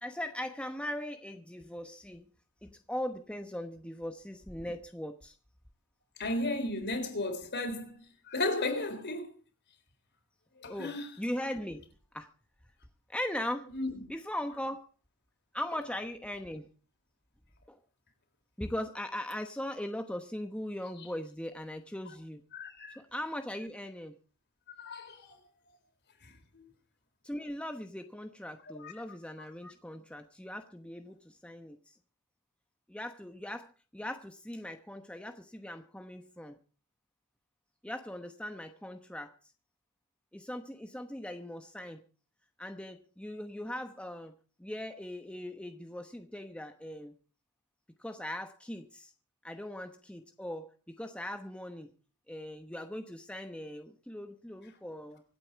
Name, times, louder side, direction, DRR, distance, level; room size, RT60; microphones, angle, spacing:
voice 1, 0.0-2.3 2.6-5.4 10.7-11.9 12.1-12.3 13.1-13.7 14.1-14.8 15.5-16.7 17.7-17.8 18.6-22.4 22.9-24.2 27.2-32.0 32.9-36.6 37.8-39.3 40.3-42.0 42.6-44.3 44.6-47.1 48.0-49.1 49.4-51.9 52.3-55.2, left 1 dB, 5° left, 0.9 m, -39 dB
voice 2, 6.2-9.3 10.6-11.1 13.7-14.0 22.5-23.0 24.8-25.4 26.2-26.6 28.8-28.9, left 2 dB, 50° left, 3.9 m, -35 dB
25.5 x 8.6 x 4.6 m
head